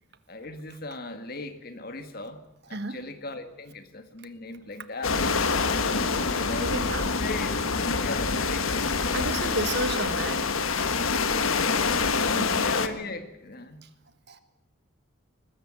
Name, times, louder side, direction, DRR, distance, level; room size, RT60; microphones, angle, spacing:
voice 1, 0.3-2.4 2.7-5.2 6.3-9.4 11.4-11.8 12.6-13.8, left 2 dB, 45° left, 8 dB, 1.9 m, -38 dB
voice 2, 2.7-3.1 5.8-5.9 6.6-7.1 9.1-10.5 12.3-12.7 13.8-13.9 14.3-14.4, right 2 dB, 50° right, 11 dB, 1.4 m, -32 dB
sound 1, 5.0-12.9, left 4 dB, 75° left, 1.4 m, -26 dB
21.0 x 14.0 x 9.5 m, 0.90 s
head